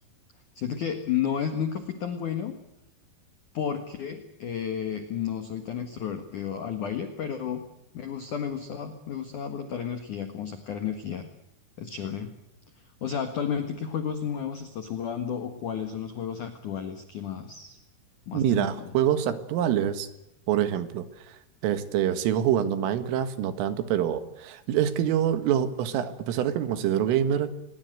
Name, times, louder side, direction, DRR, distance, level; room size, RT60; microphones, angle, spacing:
voice 1, 0.6-2.6 3.5-7.6 7.9-11.3 11.8-12.3 13.0-17.8 18.3-18.9, left 8 dB, 60° left, 8 dB, 2.1 m, -32 dB
voice 2, 18.3-20.1 20.5-21.4 21.6-27.5, right 10 dB, 80° right, 11 dB, 4.3 m, -26 dB
26.0 x 21.5 x 7.9 m, 0.87 s
omnidirectional pair, 5.8 m